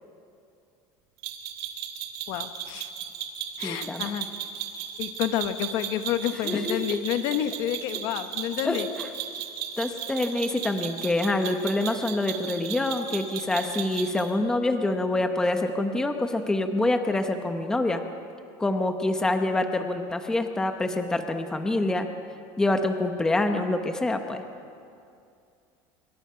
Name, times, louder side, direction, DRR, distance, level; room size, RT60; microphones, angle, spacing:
sound 1, 1.2-14.3, right 9 dB, 60° right, 2.5 m, -36 dB
voice 1, 2.3-2.9 3.6-4.3 5.0-8.9, left 11 dB, 50° left, 9 dB, 1.1 m, -29 dB
voice 2, 3.6-4.1 6.4-7.0 8.6-8.8 9.8-18.0 18.6-22.1 22.6-24.4, left 2 dB, 5° left, 6 dB, 0.9 m, -26 dB
26.0 x 23.0 x 5.7 m, 2.5 s
cardioid pair, 175°, 10 cm